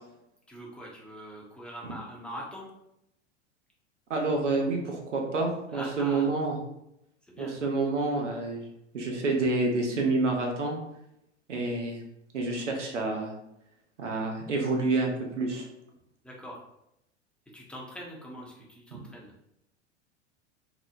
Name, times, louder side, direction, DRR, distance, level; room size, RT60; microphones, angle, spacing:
voice 1, 0.5-2.7 5.7-6.3 7.2-7.6 16.2-16.6 17.5-19.3, equal, 5° left, -4 dB, 0.5 m, -42 dB
voice 2, 4.1-6.6 7.4-8.6 8.9-10.8 11.5-12.0 12.3-13.3 14.0-15.7 18.9-19.0, right 3 dB, 85° right, 1 dB, 0.7 m, -28 dB
2.8 x 2.0 x 2.4 m, 0.83 s
figure-of-eight pair, 85°, 35 cm